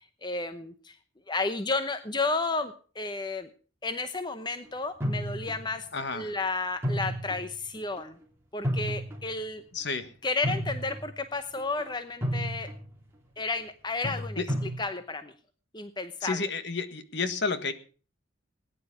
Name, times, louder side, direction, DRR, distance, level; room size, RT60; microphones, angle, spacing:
voice 1, 0.2-1.0 1.3-3.5 3.8-5.9 6.1-8.2 8.5-9.6 10.2-12.7 13.4-15.3 15.7-16.4, left 3 dB, 20° left, 10 dB, 0.8 m, -32 dB
sound 1, 5.0-5.8 6.8-7.6 8.0-8.1 8.6-9.3 10.4-11.2 11.6-11.8 12.2-12.9 14.0-14.8, equal, 10° right, 3.4 m, -32 dB
voice 2, 5.9-6.3 9.7-10.1 14.4-14.5 16.2-17.7, left 4 dB, 55° left, 11 dB, 1.5 m, -31 dB
19.0 x 10.0 x 4.8 m, 0.39 s
head